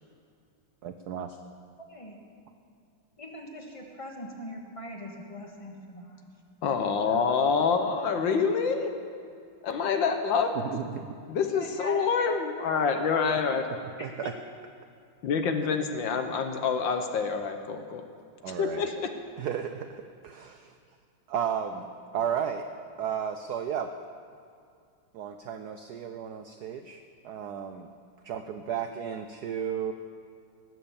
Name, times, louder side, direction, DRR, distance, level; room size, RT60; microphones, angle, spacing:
voice 1, 0.8-1.4 10.5-11.1 14.0-14.3 18.4-18.9 19.4-20.8 21.3-21.9 22.1-22.7 23.0-23.9 25.1-27.9 28.2-29.9, right 8 dB, 80° right, 8 dB, 0.9 m, -33 dB
voice 2, 3.2-6.2 11.5-12.0 12.3-12.4 12.7-12.8 13.5-13.6 14.0-14.3, equal, 15° left, 0 dB, 1.4 m, -41 dB
voice 3, 6.6-8.9 9.6-10.5 11.3-13.7 15.2-18.0 18.5-18.9, left 5 dB, 65° left, 6 dB, 1.5 m, -26 dB
19.0 x 7.9 x 7.1 m, 2.4 s
omnidirectional pair, 2.4 m